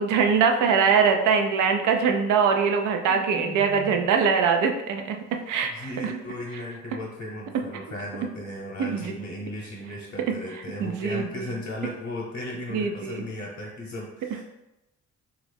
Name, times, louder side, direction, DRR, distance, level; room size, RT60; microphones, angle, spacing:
voice 1, 0.0-6.1 8.8-9.2 10.3-10.4 10.8-11.5 12.7-13.2, right 6 dB, 90° right, 4 dB, 0.5 m, -23 dB
voice 2, 3.0-4.1 5.6-14.4, left 1 dB, 50° left, -2 dB, 0.8 m, -36 dB
3.0 x 2.4 x 3.3 m, 0.93 s
cardioid pair, 90°, 30 cm